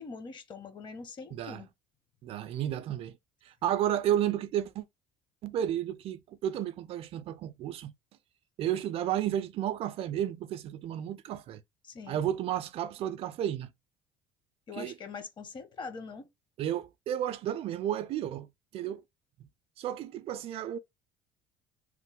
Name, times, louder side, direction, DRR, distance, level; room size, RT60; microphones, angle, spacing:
voice 1, 0.0-1.7 11.8-12.2 14.7-16.3, left 5 dB, 40° left, 0.8 m, -43 dB
voice 2, 1.3-1.6 2.2-3.1 3.5-4.9 5.4-7.9 8.6-11.6 12.1-13.7 14.7-14.9 16.6-19.0 19.8-20.8, right 11 dB, 55° right, 0.4 m, -32 dB
3.0 x 2.1 x 3.6 m
supercardioid pair, 75°, 12 cm